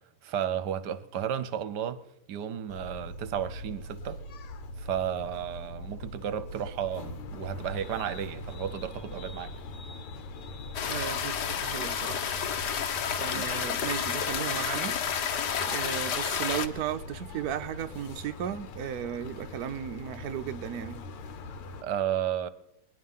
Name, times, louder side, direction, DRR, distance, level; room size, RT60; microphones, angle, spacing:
voice 1, 0.2-2.0 2.3-4.2 4.8-9.5 13.3-13.5 21.8-22.5, right 9 dB, 60° right, 1.2 m, -33 dB
sound 1, 2.7-21.8, left 2 dB, 80° left, 2.0 m, -42 dB
sound 2, 10.7-16.7, left 7 dB, 55° left, 1.4 m, -30 dB
voice 2, 10.9-12.3 13.2-15.0 15.7-21.0, right 10 dB, 80° right, 0.8 m, -35 dB
20.5 x 11.0 x 5.6 m
omnidirectional pair, 2.4 m